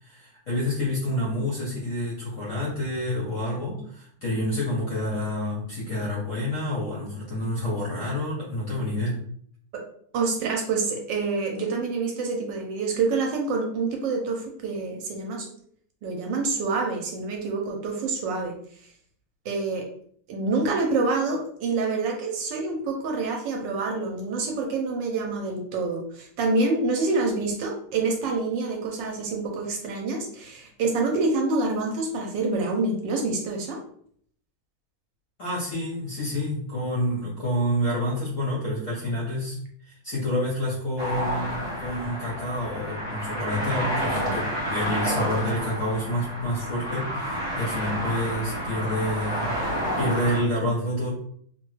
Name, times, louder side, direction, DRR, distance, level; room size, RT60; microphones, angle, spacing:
voice 1, 0.0-9.2 35.4-39.6 39.8-49.5 50.0-51.1, left 1 dB, 60° left, -5 dB, 0.8 m, -28 dB
voice 2, 10.1-15.5 16.0-18.5 19.4-19.8 20.3-33.8, right 3 dB, 75° right, 1 dB, 1.2 m, -27 dB
sound 1, 41.0-50.4, equal, 35° right, 0.4 m, -30 dB
3.2 x 2.2 x 3.1 m, 0.62 s
omnidirectional pair, 2.2 m